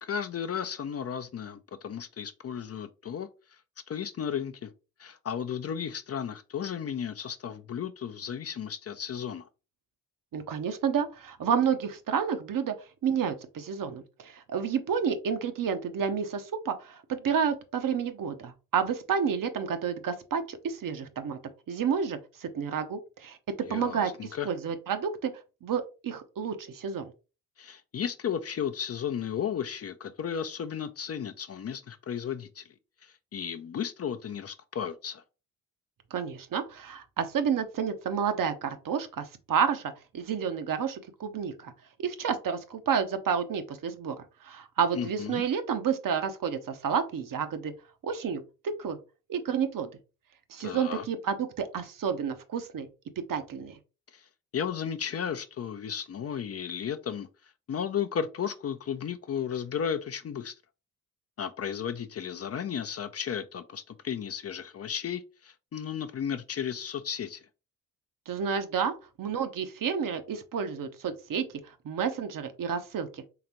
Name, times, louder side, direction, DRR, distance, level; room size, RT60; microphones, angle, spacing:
voice 1, 0.0-3.6 3.9-4.7 5.0-9.5 23.7-24.5 27.6-32.7 33.0-35.2 44.9-45.4 50.6-51.0 54.1-54.3 54.5-60.5 61.4-67.5, left 8 dB, 35° left, 0.5 m, -34 dB
voice 2, 10.3-12.7 13.0-21.4 21.7-23.4 23.7-24.1 24.4-25.3 25.6-27.1 36.1-41.7 42.0-44.2 44.4-47.7 48.0-49.0 49.3-49.9 50.5-52.9 53.2-53.8 68.3-71.5 71.8-73.2, right 7 dB, 50° right, 0.8 m, -30 dB
3.9 x 3.3 x 3.0 m
hypercardioid pair, 50°, 42 cm